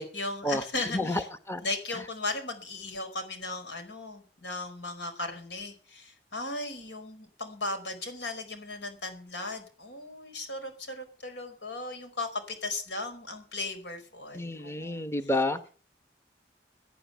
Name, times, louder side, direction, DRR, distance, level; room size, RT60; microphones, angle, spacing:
voice 1, 0.0-1.3 1.6-15.4, left 2 dB, 85° left, 8 dB, 4.9 m, -37 dB
voice 2, 14.3-15.7, left 1 dB, 15° left, 8 dB, 0.9 m, -29 dB
17.5 x 10.5 x 6.9 m, 0.41 s
head